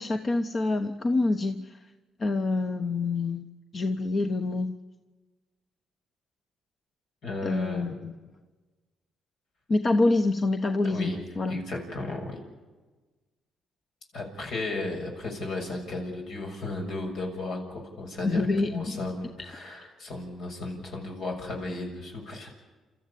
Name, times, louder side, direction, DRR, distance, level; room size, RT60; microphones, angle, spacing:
voice 1, 0.0-1.8 2.2-3.4 3.7-4.8 7.4-8.1 9.7-11.6 18.2-19.1, left 2 dB, 40° left, 7 dB, 1.1 m, -26 dB
voice 2, 7.2-7.9 10.8-11.2 11.5-12.4 14.1-22.5, left 2 dB, 75° left, 1 dB, 6.6 m, -35 dB
30.0 x 14.0 x 8.5 m, 1.3 s
cardioid pair, 90°, 0 cm